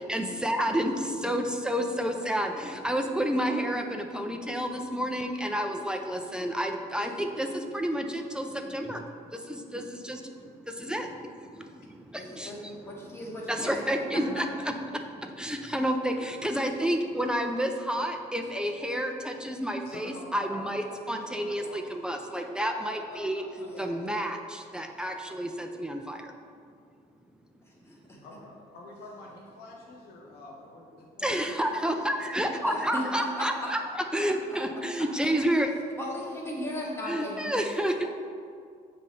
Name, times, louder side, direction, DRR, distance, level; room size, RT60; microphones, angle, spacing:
voice 1, 0.1-12.7 13.5-23.4 23.8-26.3 27.9-28.0 31.2-33.8 34.1-35.7 37.1-38.1, equal, 5° right, 3 dB, 0.5 m, -30 dB
voice 2, 12.2-13.8 14.1-14.4 23.6-24.0 27.9-28.2 32.6-33.7 35.0-35.1 36.0-37.5, left 1 dB, 15° left, -4 dB, 1.5 m, -36 dB
voice 3, 19.8-24.4 24.7-25.3 28.2-32.0 36.7-36.9, left 2 dB, 70° left, -1 dB, 0.9 m, -48 dB
7.4 x 3.4 x 5.3 m, 2.2 s
cardioid pair, 110°, 17 cm